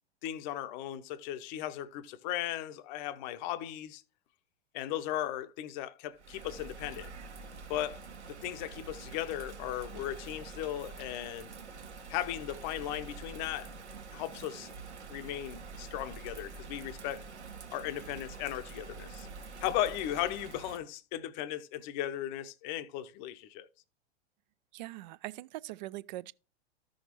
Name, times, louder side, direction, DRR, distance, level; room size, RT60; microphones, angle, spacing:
voice 1, 0.2-4.0 4.7-7.1 7.7-11.5 12.1-13.7 14.1-14.7 15.1-17.2 17.7-19.3 19.6-23.7, left 12 dB, 45° left, 0.7 m, -37 dB
Bird vocalization bird call bird song / Rain, 6.1-20.8, right 4 dB, 85° right, 1.3 m, -46 dB
voice 2, 24.7-26.3, right 17 dB, 45° right, 0.4 m, -42 dB
13.5 x 6.3 x 3.0 m
figure-of-eight pair, 95°, 34 cm